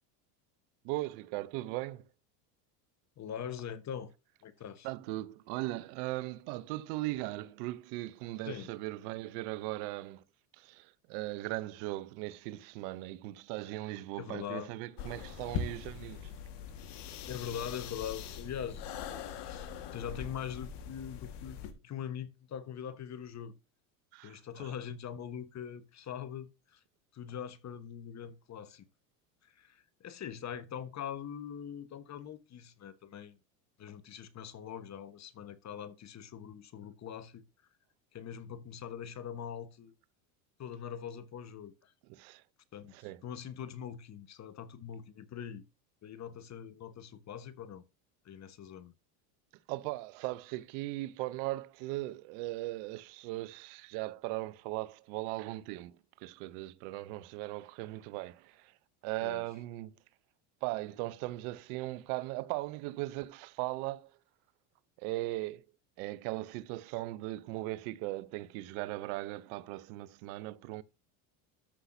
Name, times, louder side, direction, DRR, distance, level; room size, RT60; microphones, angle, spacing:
voice 1, 0.8-2.1 4.8-10.2 10.5-16.3 24.1-24.7 42.1-42.4 42.9-43.2 49.7-58.8 59.0-60.0 60.6-64.2 65.0-65.6 66.0-70.8, right 18 dB, 65° right, 0.9 m, -38 dB
voice 2, 3.2-4.1 4.4-4.9 8.5-8.7 14.2-14.7 17.3-23.5 24.2-26.8 27.1-28.9 29.4-33.4 33.8-37.4 38.1-39.9 40.6-41.9 42.7-42.9 43.2-45.6 46.0-47.8 48.2-48.9 59.2-59.4, left 8 dB, 35° left, 1.3 m, -42 dB
sound 1, 15.0-21.7, left 7 dB, 55° left, 1.9 m, -42 dB
13.5 x 5.7 x 2.8 m
supercardioid pair, 100°, 46 cm